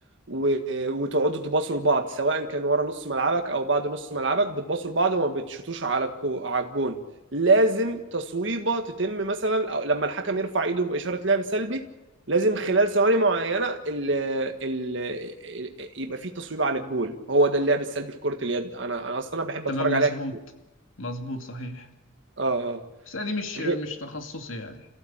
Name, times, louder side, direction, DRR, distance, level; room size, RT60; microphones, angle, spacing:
voice 1, 0.3-7.0 7.3-11.8 12.3-20.1 22.4-22.8 23.6-23.7, right 2 dB, 65° right, 4 dB, 1.7 m, -25 dB
voice 2, 19.7-20.3 21.0-21.9 23.1-24.9, left 1 dB, 80° left, 5 dB, 2.4 m, -32 dB
28.0 x 15.0 x 8.8 m, 1.0 s
head